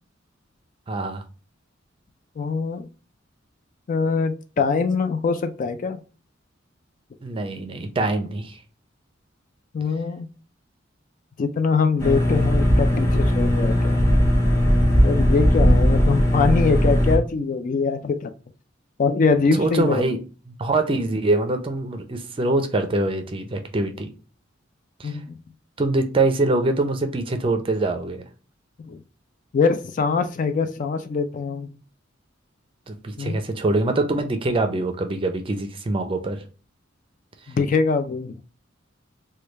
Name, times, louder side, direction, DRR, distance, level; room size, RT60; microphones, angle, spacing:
voice 1, 0.9-1.2 7.2-8.6 19.6-20.2 20.5-24.1 25.0-25.2 25.8-28.2 32.9-36.4, right 2 dB, 25° right, 0.5 m, -24 dB
voice 2, 2.4-2.9 3.9-6.0 9.7-10.3 11.4-14.0 15.0-18.3 19.0-20.2 25.0-25.4 28.9-29.0 29.5-31.7 33.2-33.4 37.5-38.3, left 4 dB, 40° left, 0.3 m, -23 dB
sound 1, 12.0-17.2, equal, 15° left, 0.8 m, -18 dB
3.2 x 2.3 x 3.1 m
head